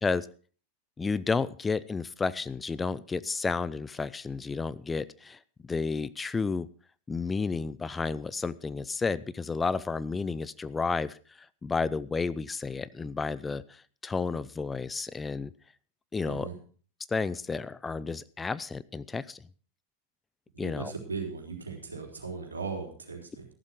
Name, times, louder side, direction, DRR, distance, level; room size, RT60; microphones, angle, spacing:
voice 1, 1.0-5.4 5.7-6.7 7.1-11.2 11.6-15.5 16.1-16.5 17.1-19.4 20.6-20.9, left 4 dB, 15° left, 17 dB, 0.5 m, -31 dB
voice 2, 20.5-23.5, right 5 dB, 75° right, 1 dB, 3.7 m, -38 dB
14.5 x 12.0 x 4.5 m, 0.40 s
figure-of-eight pair, 90°, 0 cm